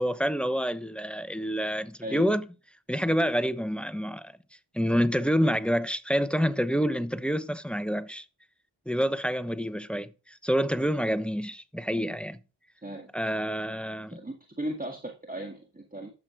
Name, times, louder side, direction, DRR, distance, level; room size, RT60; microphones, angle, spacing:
voice 1, 0.0-2.5 2.9-4.3 4.7-8.2 8.9-12.4 13.1-14.2, equal, ahead, 0.9 m, -27 dB
voice 2, 14.1-16.1, right 1 dB, 15° right, 1.8 m, -36 dB
12.0 x 7.7 x 5.2 m
wide cardioid pair, 50°, 50 cm